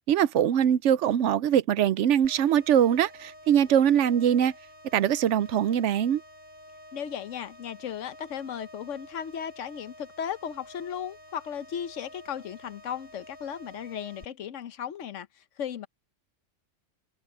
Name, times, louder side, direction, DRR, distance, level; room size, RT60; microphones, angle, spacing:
voice 1, 0.1-4.5 4.9-6.2, right 9 dB, 75° right, 0.9 m, -22 dB
sound 1, 2.2-14.2, equal, 50° left, 7.1 m, -50 dB
voice 2, 6.9-15.3 15.6-15.9, left 8 dB, 80° left, 1.2 m, -36 dB
omnidirectional pair, 1.3 m